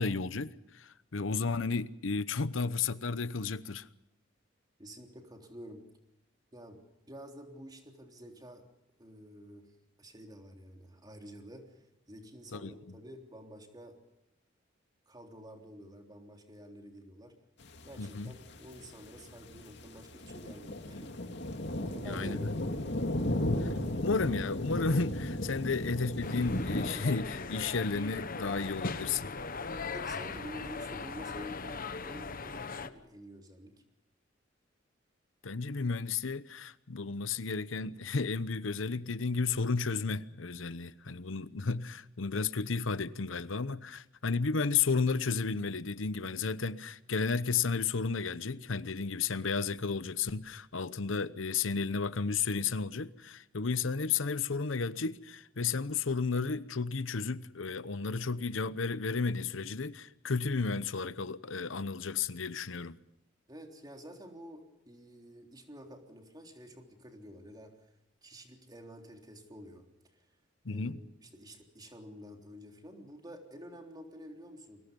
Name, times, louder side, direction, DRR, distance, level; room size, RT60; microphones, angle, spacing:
voice 1, 0.0-3.9 12.5-12.7 18.0-18.3 22.0-22.5 23.6-23.7 24.0-29.3 35.4-63.0 70.6-71.0, left 4 dB, 85° left, 0.9 m, -33 dB
voice 2, 4.8-5.9 6.5-6.8 7.1-8.6 9.0-9.7 10.0-14.0 15.1-17.3 17.9-21.2 21.8-23.0 23.4-23.5 29.9-33.7 63.5-67.8 68.2-69.9 70.1-70.3 70.7-74.8, equal, 20° right, 3.5 m, -49 dB
sound 1, 17.6-26.9, left 1 dB, 60° left, 2.4 m, -35 dB
sound 2, 26.2-32.9, left 4 dB, 45° left, 1.1 m, -39 dB
29.5 x 22.5 x 5.4 m
head